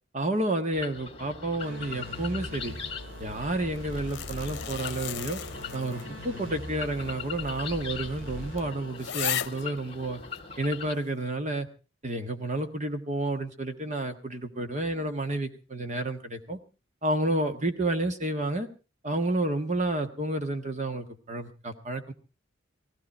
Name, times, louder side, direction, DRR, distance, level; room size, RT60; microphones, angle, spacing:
voice 1, 0.1-2.7 3.2-5.4 5.7-10.2 10.6-11.7 12.0-16.6 17.0-18.7 19.0-22.1, right 2 dB, 35° right, 7 dB, 1.5 m, -30 dB
sound 1, 0.7-10.9, left 6 dB, 30° left, 2.1 m, -42 dB
sound 2, 1.6-9.3, equal, 75° right, 2.3 m, -41 dB
sound 3, 3.8-6.2 6.6-6.7 7.5-7.6 8.0-8.1 8.6-8.7 9.0-9.7 10.4-10.5, left 10 dB, 60° left, 0.9 m, -35 dB
18.0 x 15.5 x 4.3 m, 0.33 s
head